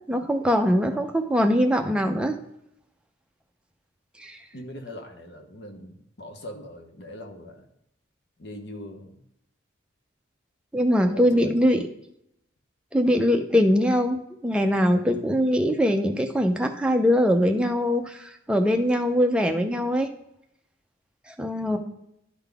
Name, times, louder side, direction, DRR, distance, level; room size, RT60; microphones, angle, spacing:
voice 1, 0.1-2.4 4.2-4.4 10.7-11.8 12.9-20.1 21.3-21.8, equal, 5° right, 4 dB, 0.5 m, -22 dB
voice 2, 0.8-1.3 4.5-7.7 8.4-9.3 11.1-11.6 21.7-21.8, left 1 dB, 55° left, 4 dB, 1.0 m, -41 dB
11.0 x 3.9 x 3.4 m, 0.79 s
head